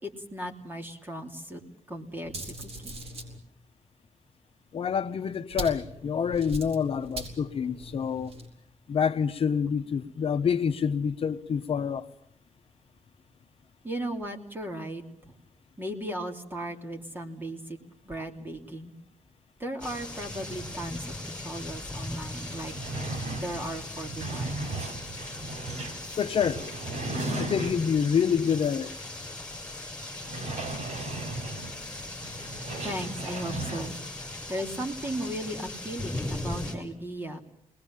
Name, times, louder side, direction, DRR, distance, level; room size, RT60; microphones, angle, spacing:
voice 1, 0.0-1.6 1.9-3.0 13.8-15.3 15.8-17.8 18.0-18.9 19.6-22.7 23.4-24.6 32.8-34.0 34.5-37.4, right 1 dB, 15° right, 3.1 m, -36 dB
sound 1, 2.2-3.4 5.5-8.5, right 1 dB, 65° right, 5.0 m, -40 dB
voice 2, 4.7-8.3 8.9-12.1 26.2-26.6 27.3-28.9, left 7 dB, 55° left, 1.0 m, -27 dB
sound 2, 19.8-36.7, left 2 dB, 10° left, 5.3 m, -39 dB
sound 3, 22.4-28.1 28.6-28.7 29.1-29.2 30.2-34.0, right 2 dB, 85° right, 5.3 m, -36 dB
28.5 x 21.0 x 7.4 m
wide cardioid pair, 160°, 11 cm